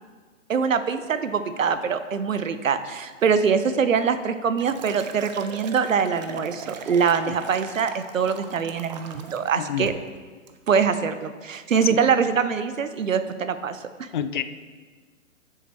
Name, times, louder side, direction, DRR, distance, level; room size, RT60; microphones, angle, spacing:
voice 1, 0.5-9.9 10.7-14.1, right 6 dB, 75° right, 11 dB, 0.8 m, -24 dB
Liquid, 4.0-9.5 9.9-10.1 10.5-10.8, right 7 dB, 35° right, 0.6 m, -39 dB
voice 2, 9.6-9.9 11.9-12.0 14.1-14.4, left 9 dB, 40° left, 12 dB, 0.4 m, -28 dB
9.3 x 7.2 x 4.4 m, 1.5 s
figure-of-eight pair, 125°, 40 cm